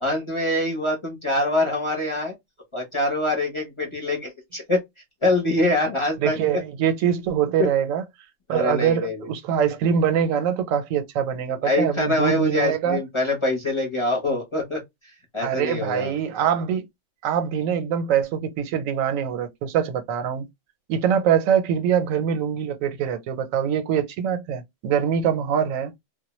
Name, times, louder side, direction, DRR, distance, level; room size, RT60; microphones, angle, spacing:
voice 1, 0.0-2.3 2.7-4.8 5.2-6.4 8.5-9.2 11.6-14.8 15.3-16.1, left 2 dB, 30° left, 0.6 m, -24 dB
voice 2, 6.2-8.0 8.5-13.0 15.4-16.9 17.2-20.5 20.9-25.9, right 8 dB, 90° right, 1.0 m, -23 dB
2.1 x 2.1 x 2.9 m
omnidirectional pair, 1.3 m